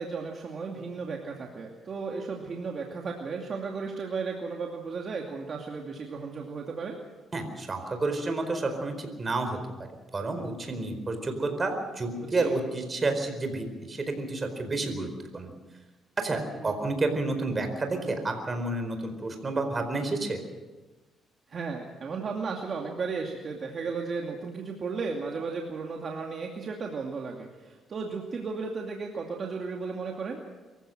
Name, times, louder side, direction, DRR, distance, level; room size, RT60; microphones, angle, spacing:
voice 1, 0.0-7.0 12.3-12.6 21.5-30.4, right 4 dB, 50° right, 1 dB, 2.5 m, -34 dB
voice 2, 7.3-9.6 10.1-15.5 16.2-20.4, right 2 dB, 30° right, 6 dB, 4.5 m, -30 dB
24.0 x 15.5 x 7.7 m, 1.2 s
cardioid pair, 90°, 0 cm